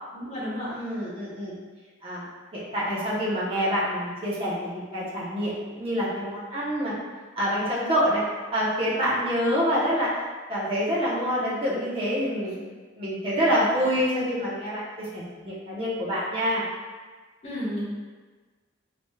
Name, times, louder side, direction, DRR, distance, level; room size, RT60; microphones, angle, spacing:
voice 1, 0.1-0.7 17.4-17.8, equal, 30° left, -8 dB, 1.0 m, -31 dB
voice 2, 0.7-1.5 2.0-2.3 2.5-6.9 7.3-8.2 8.5-10.1 10.5-12.6 13.0-16.6, equal, 30° right, -8 dB, 0.9 m, -26 dB
3.9 x 3.2 x 2.3 m, 1.4 s
head